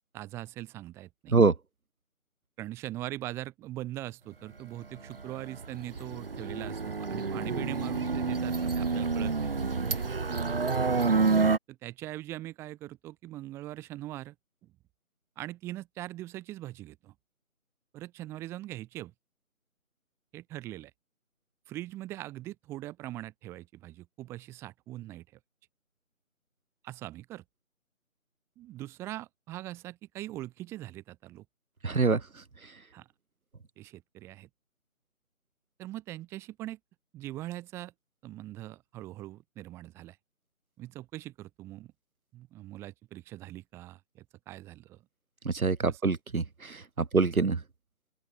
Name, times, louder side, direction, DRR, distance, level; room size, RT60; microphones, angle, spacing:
voice 1, 0.1-1.4 2.6-9.5 9.9-10.2 11.7-14.3 15.4-17.1 17.9-19.1 20.3-20.9 21.7-25.2 26.8-27.4 28.6-31.4 32.9-33.1 33.8-34.5 35.8-36.8 37.1-37.9 38.2-40.2 40.8-41.9 42.3-45.0 45.9-46.0 47.0-47.3, right 15 dB, 5° right, 2.8 m, -41 dB
sound 1, 5.1-11.6, right 4 dB, 40° right, 1.1 m, -28 dB
voice 2, 31.8-32.2 45.4-46.8 47.1-47.6, right 4 dB, 85° right, 1.2 m, -24 dB
open air
figure-of-eight pair, 160°, 42 cm